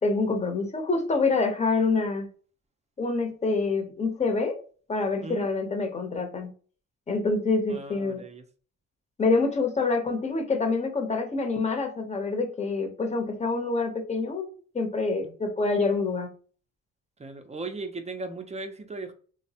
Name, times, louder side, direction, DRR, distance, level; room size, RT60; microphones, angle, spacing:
voice 1, 0.0-2.3 3.0-4.6 4.9-6.5 7.1-8.2 9.2-14.5 14.7-16.3, left 3 dB, 25° left, 0.7 m, -26 dB
voice 2, 7.7-8.4 15.2-15.3 17.2-19.1, right 3 dB, 20° right, 0.4 m, -37 dB
3.1 x 2.0 x 2.7 m
cardioid pair, 90°, 30 cm